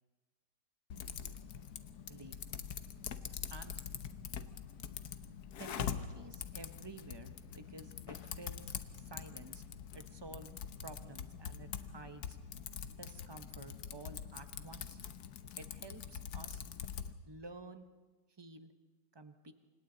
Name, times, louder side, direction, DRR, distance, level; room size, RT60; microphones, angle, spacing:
Typing, 0.9-17.1, left 8 dB, 65° left, 1.4 m, -44 dB
voice 1, 5.6-9.6 9.9-10.5 10.8-12.4 13.0-15.0 15.6-16.6 17.3-17.9 18.4-18.7 19.1-19.5, right 3 dB, 20° right, 9 dB, 0.8 m, -51 dB
28.5 x 25.5 x 4.0 m, 1.3 s
omnidirectional pair, 1.8 m